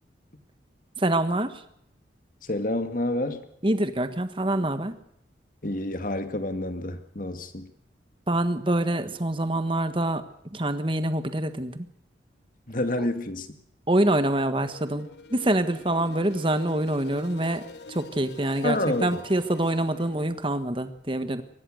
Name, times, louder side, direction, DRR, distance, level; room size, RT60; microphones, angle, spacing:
voice 1, 1.0-1.6 3.6-5.0 8.3-10.2 10.5-11.9 13.9-17.6 17.9-21.4, right 1 dB, 30° right, 10 dB, 1.5 m, -25 dB
voice 2, 2.4-3.4 5.6-7.7 12.7-13.6 18.6-19.2, left 1 dB, 50° left, 8 dB, 2.1 m, -28 dB
sound 1, 14.3-20.3, left 3 dB, 70° left, 1.7 m, -46 dB
23.0 x 19.0 x 6.5 m, 0.70 s
head